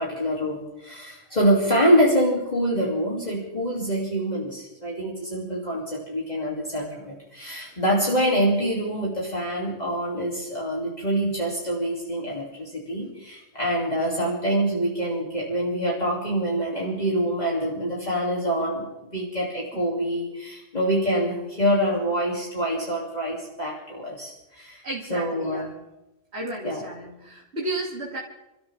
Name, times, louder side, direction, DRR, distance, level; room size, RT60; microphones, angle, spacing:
voice 1, 0.0-24.8 25.1-25.7 26.6-26.8, equal, 40° left, -4 dB, 2.9 m, -25 dB
voice 2, 24.8-25.7 26.3-28.2, right 2 dB, 75° right, -4 dB, 2.8 m, -33 dB
28.5 x 13.5 x 3.5 m, 0.93 s
omnidirectional pair, 1.1 m